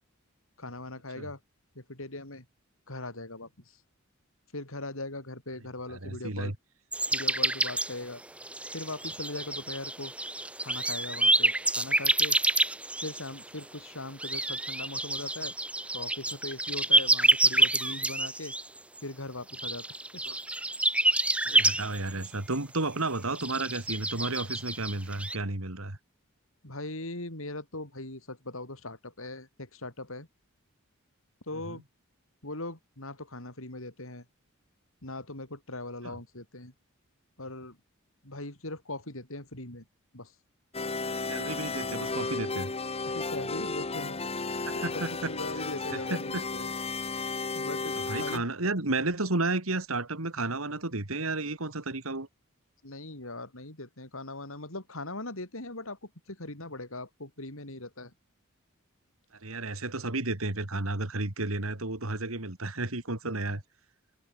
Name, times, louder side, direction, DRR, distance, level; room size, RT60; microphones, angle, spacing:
voice 1, 0.6-1.4 1.8-2.5 2.9-3.8 4.5-6.5 7.1-8.2 8.7-10.1 10.6-12.4 13.0-15.5 15.9-18.6 19.0-19.9 20.1-20.2 26.6-30.3 31.5-31.8 32.4-34.3 35.0-36.7 37.4-37.8 38.2-39.9 40.1-40.3 43.1-46.7 47.5-48.4 52.8-58.1, left 2 dB, 70° left, 6.9 m, -40 dB
voice 2, 5.9-6.5 20.3-20.4 21.4-26.0 31.7-31.8 36.0-36.1 41.3-42.7 44.6-45.3 45.9-46.4 48.0-52.3 59.4-63.6, right 2 dB, 75° right, 2.9 m, -32 dB
sound 1, 6.9-7.9 8.4-13.4 14.2-18.6 19.0-19.1 19.5-22.3 22.5-22.6 23.4-25.4, right 2 dB, 5° right, 1.2 m, -27 dB
sound 2, 40.7-48.4, left 3 dB, 30° left, 1.4 m, -33 dB
head